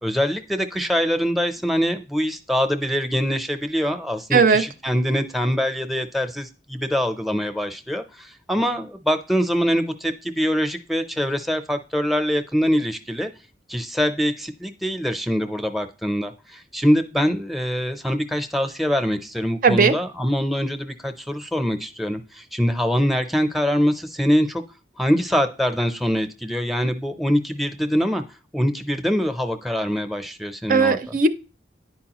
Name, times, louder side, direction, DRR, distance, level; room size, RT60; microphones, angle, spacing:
voice 1, 0.0-13.3 13.7-24.6 25.0-28.2 28.5-31.0, equal, ahead, 8 dB, 0.6 m, -24 dB
voice 2, 4.3-4.6 19.6-20.0 30.7-31.3, right 4 dB, 45° right, 11 dB, 0.4 m, -17 dB
10.5 x 4.7 x 2.9 m, 0.33 s
head